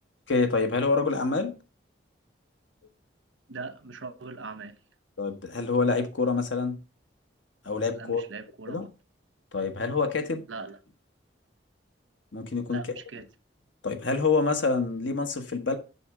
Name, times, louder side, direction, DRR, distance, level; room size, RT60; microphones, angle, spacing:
voice 1, 0.3-1.5 5.2-6.8 7.6-8.2 8.7-8.8 9.5-10.4 12.3-12.8 13.8-15.8, left 4 dB, 80° left, 1.3 m, -26 dB
voice 2, 3.5-4.7 7.9-8.9 10.5-10.8 12.7-13.3, right 4 dB, 85° right, 1.0 m, -40 dB
7.0 x 5.8 x 4.9 m
head